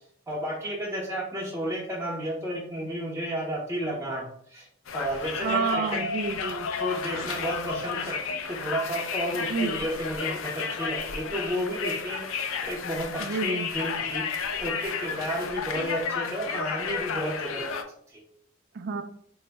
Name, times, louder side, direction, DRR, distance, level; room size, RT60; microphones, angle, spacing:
voice 1, 0.3-4.7 4.9-6.0 6.8-17.7 18.1-18.2, equal, 15° right, -5 dB, 0.6 m, -32 dB
Conversation, 4.9-17.8, left 6 dB, 80° left, 0.5 m, -32 dB
voice 2, 5.4-6.7 9.5-9.9 13.2-13.7 18.7-19.0, right 5 dB, 55° right, 9 dB, 0.4 m, -29 dB
3.8 x 2.1 x 3.3 m, 0.64 s
head